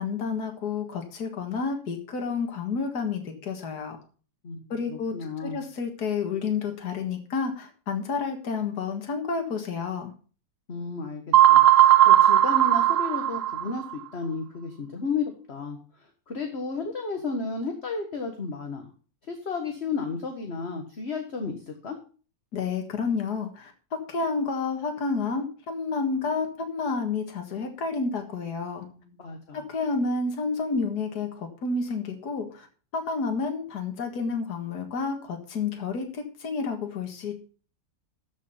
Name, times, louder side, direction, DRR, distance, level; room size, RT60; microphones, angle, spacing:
voice 1, 0.0-4.0 4.7-10.1 22.5-23.7 24.1-28.9 29.5-32.7 32.9-37.3, left 4 dB, 70° left, 4 dB, 2.2 m, -30 dB
voice 2, 4.4-5.6 10.7-18.9 19.3-22.0 28.8-29.6, left 4 dB, 40° left, 4 dB, 1.7 m, -33 dB
sound 1, 11.3-13.9, right 12 dB, 60° right, 0.9 m, -17 dB
13.5 x 6.3 x 5.6 m, 0.39 s
omnidirectional pair, 1.8 m